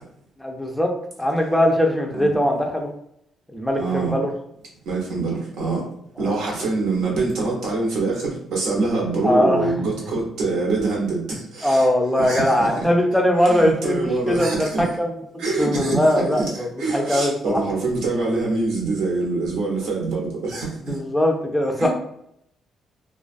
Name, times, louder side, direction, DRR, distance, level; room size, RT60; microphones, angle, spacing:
voice 1, 0.4-0.9 1.2-2.9 3.5-4.3 6.2-6.3 9.2-9.7 11.6-15.1 15.6-17.6 20.9-21.9, left 1 dB, 5° left, 1 dB, 0.4 m, -20 dB
voice 2, 3.8-4.1 4.9-5.8 6.2-11.9 12.2-12.9 13.4-14.9 15.4-21.0 21.8-21.9, right 3 dB, 80° right, -2 dB, 0.8 m, -25 dB
2.3 x 2.2 x 2.4 m, 0.74 s
cardioid pair, 90°, 0 cm